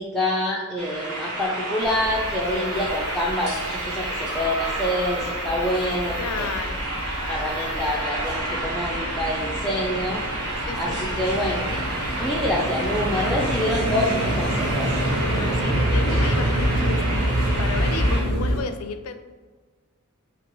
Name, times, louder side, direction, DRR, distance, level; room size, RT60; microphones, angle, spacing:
voice 1, 0.0-6.5 7.3-10.2 10.8-11.8 12.2-14.9, left 1 dB, ahead, -6 dB, 0.4 m, -26 dB
sound 1, 0.8-18.2, right 1 dB, 90° right, 1.1 m, -30 dB
sound 2, 1.8-18.6, equal, 55° right, 1.5 m, -27 dB
voice 2, 6.2-6.9 10.6-11.2 14.9-19.2, left 5 dB, 80° left, 8 dB, 0.4 m, -34 dB
5.3 x 2.9 x 2.9 m, 1.4 s
head